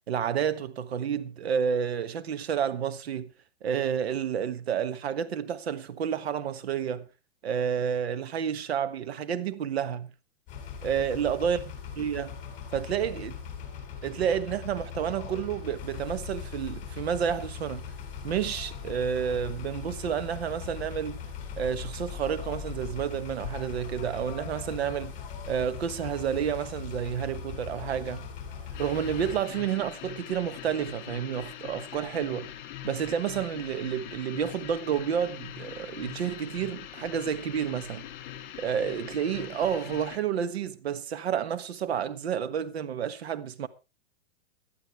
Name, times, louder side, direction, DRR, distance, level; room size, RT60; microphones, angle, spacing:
voice 1, 0.1-3.3 3.6-7.1 7.4-10.1 10.8-11.6 12.0-12.3 12.7-13.3 14.0-17.9 18.2-21.2 21.6-25.1 25.5-28.3 28.8-32.5 32.8-38.0 38.6-43.7, right 8 dB, 90° right, 1.6 m, -30 dB
sound 1, 10.5-29.4, left 7 dB, 25° left, 5.2 m, -40 dB
sound 2, 28.7-40.2, left 11 dB, 50° left, 2.8 m, -42 dB
18.0 x 12.0 x 3.4 m
supercardioid pair, 160°, 31 cm